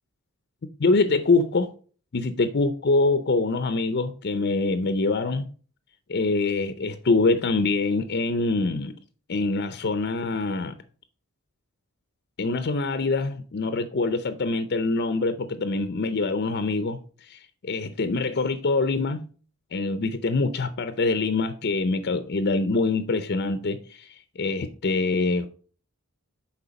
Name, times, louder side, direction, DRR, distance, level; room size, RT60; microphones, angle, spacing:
voice 1, 0.8-1.7 2.1-5.5 6.1-9.0 9.3-10.7 12.4-17.0 17.3-19.3 19.7-24.1 24.4-25.5, left 3 dB, 50° left, 0.6 m, -24 dB
6.9 x 4.5 x 5.2 m
head